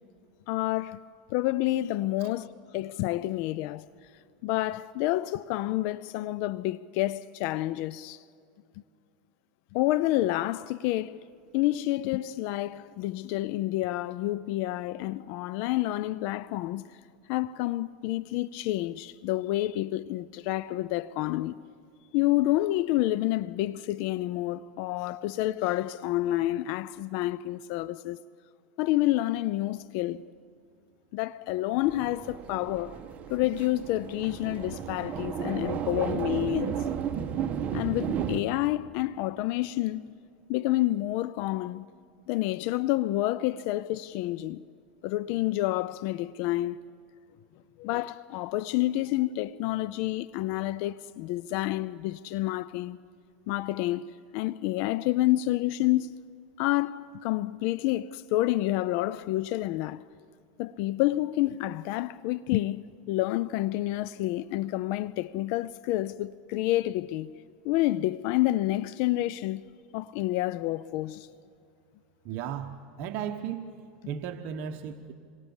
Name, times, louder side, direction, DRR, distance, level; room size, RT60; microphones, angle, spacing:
voice 1, 0.5-1.0 1.3-3.9 4.4-8.2 9.7-11.2 11.5-16.8 17.3-21.6 22.1-28.2 28.8-30.3 31.1-33.0 33.3-36.9 37.7-40.1 40.5-41.8 42.3-44.6 45.0-46.8 47.8-53.0 53.5-56.2 56.6-60.1 60.6-67.3 67.6-69.6 69.9-71.3, left 16 dB, 55° left, 0.5 m, -29 dB
sound 1, 31.8-38.4, right 8 dB, 35° right, 1.4 m, -33 dB
voice 2, 72.2-73.7 74.0-75.1, right 8 dB, 50° right, 1.2 m, -35 dB
27.5 x 24.0 x 7.2 m
supercardioid pair, 125°, 5 cm